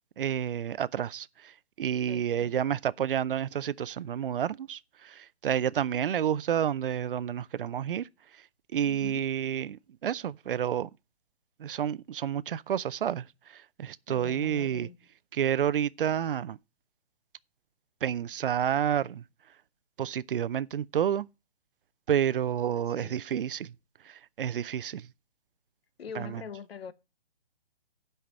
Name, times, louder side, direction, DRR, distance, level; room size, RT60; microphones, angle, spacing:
voice 1, 0.2-8.1 8.3-8.4 8.7-10.9 11.6-14.9 15.3-16.6 18.0-19.2 20.0-21.3 22.1-23.7 24.0-25.1 26.1-26.4, right 9 dB, 55° right, 0.5 m, -30 dB
voice 2, 2.1-2.6 8.8-9.3 14.1-15.0 23.0-23.1 26.0-26.9, left 6 dB, 65° left, 1.0 m, -43 dB
8.7 x 5.7 x 7.4 m
hypercardioid pair, 150°, 32 cm